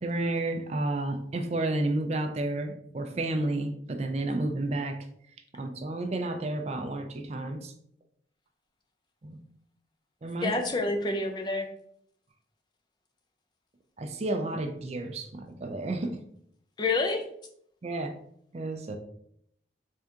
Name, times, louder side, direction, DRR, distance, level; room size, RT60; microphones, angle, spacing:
voice 1, 0.0-5.0 5.5-7.7 9.2-9.4 10.2-10.5 14.0-16.2 17.8-18.1 18.5-19.0, right 2 dB, 35° right, 6 dB, 0.4 m, -31 dB
voice 2, 10.4-11.7 16.8-17.2, left 3 dB, 25° left, 4 dB, 0.4 m, -28 dB
3.5 x 2.7 x 3.6 m, 0.68 s
head